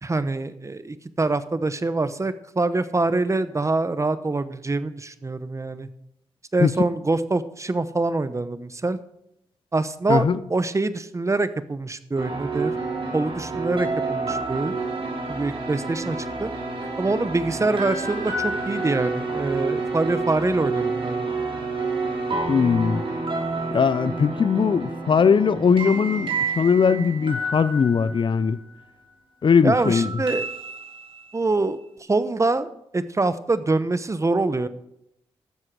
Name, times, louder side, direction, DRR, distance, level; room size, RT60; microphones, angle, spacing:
voice 1, 0.0-5.9 6.5-9.0 9.7-12.7 13.1-14.8 15.3-16.5 17.0-21.4 29.6-30.5 31.3-31.8 32.1-34.7, right 3 dB, 30° right, 0.9 m, -25 dB
sound 1, 12.2-28.8 29.8-31.4, right 3 dB, 55° right, 3.1 m, -29 dB
voice 2, 22.5-23.0 23.7-28.6 29.4-30.1, left 6 dB, 50° left, 0.6 m, -20 dB
12.0 x 7.7 x 4.7 m
cardioid pair, 55°, 11 cm